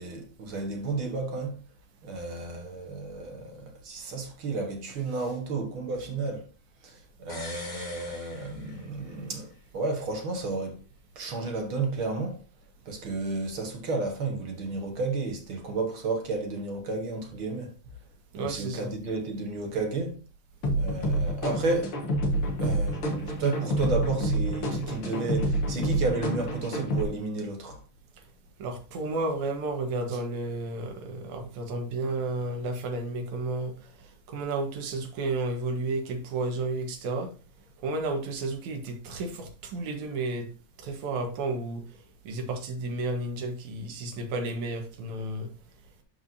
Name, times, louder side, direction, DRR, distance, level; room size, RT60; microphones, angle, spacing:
voice 1, 0.0-1.6 2.0-6.5 6.8-10.8 11.2-12.4 12.9-17.7 18.4-20.2 20.8-22.0 22.6-27.8, right 3 dB, 50° right, 2.0 m, -32 dB
sound 1, 7.3-9.2 9.5-9.6, left 2 dB, 20° left, 1.2 m, -43 dB
voice 2, 18.3-18.9 28.6-33.7 34.3-37.3 37.8-40.5 40.8-41.8 42.3-45.5, right 2 dB, 75° right, 2.7 m, -32 dB
sound 2, 20.6-27.0, right 1 dB, 55° left, 2.0 m, -28 dB
12.0 x 4.8 x 2.7 m
omnidirectional pair, 3.3 m